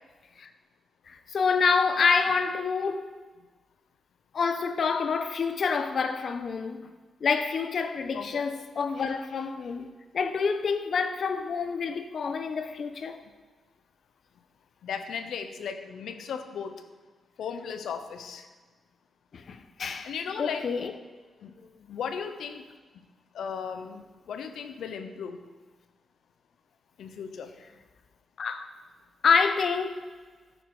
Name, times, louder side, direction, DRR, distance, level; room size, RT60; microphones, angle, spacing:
voice 1, 1.1-3.1 4.3-6.9 7.2-13.2 19.3-20.1 20.4-20.9 28.4-28.7 29.2-30.0, left 5 dB, 60° left, 1.0 m, -27 dB
voice 2, 8.1-8.4 14.8-16.9 17.4-18.5 20.0-20.7 21.4-21.5 21.9-22.7 23.3-25.5 27.0-27.5, left 6 dB, 90° left, 1.0 m, -36 dB
13.5 x 9.5 x 4.9 m
cardioid pair, 100°, 0 cm